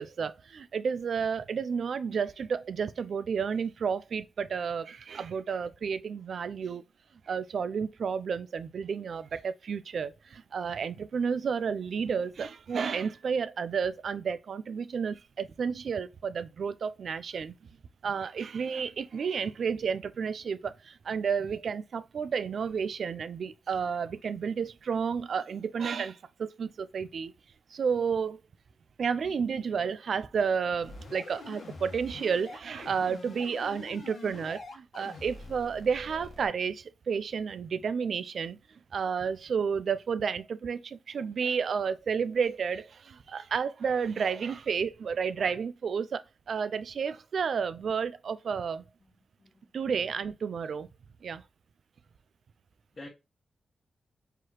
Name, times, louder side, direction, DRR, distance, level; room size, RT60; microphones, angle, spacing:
voice 1, 0.0-6.8 7.3-17.6 18.0-27.3 27.7-28.4 29.0-38.6 38.9-46.2 46.5-48.8 49.7-50.9 51.2-51.4, right 6 dB, 70° right, 0.4 m, -31 dB
sound 1, 30.8-36.5, left 3 dB, 75° left, 1.3 m, -45 dB
voice 2, 49.4-49.9 52.9-53.1, left 2 dB, 40° left, 1.1 m, -48 dB
4.6 x 2.9 x 3.0 m
cardioid pair, 60°, 0 cm